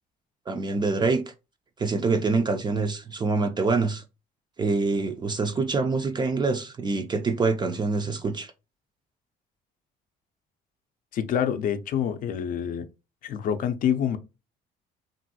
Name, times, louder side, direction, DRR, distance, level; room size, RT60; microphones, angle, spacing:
voice 1, 0.5-1.2 1.8-4.0 4.6-8.5, right 4 dB, 25° right, 0.4 m, -25 dB
voice 2, 11.1-12.9 13.2-14.2, left 9 dB, 55° left, 0.5 m, -26 dB
3.0 x 2.6 x 2.7 m
cardioid pair, 110°, 17 cm